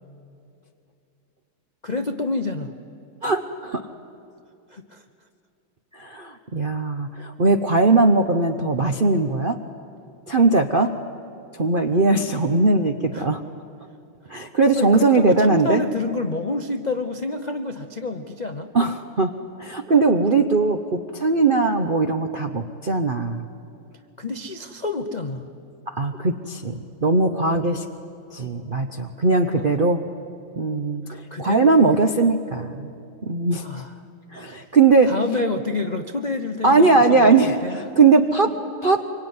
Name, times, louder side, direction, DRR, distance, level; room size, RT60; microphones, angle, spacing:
voice 1, 1.8-2.7 4.7-5.0 13.1-13.3 14.7-18.7 24.2-25.5 29.5-29.7 31.3-31.7 33.6-33.9 35.0-37.8, left 3 dB, 50° left, 6 dB, 0.5 m, -28 dB
voice 2, 3.2-3.8 5.9-9.6 10.3-10.9 11.5-13.4 14.3-15.8 18.7-19.3 19.6-23.4 25.9-27.8 28.3-30.0 30.6-32.9 33.2-33.7 34.3-35.1 36.6-38.5 38.8-39.0, right 3 dB, 55° right, 6 dB, 0.6 m, -19 dB
25.0 x 24.0 x 9.6 m, 2.6 s
omnidirectional pair, 2.3 m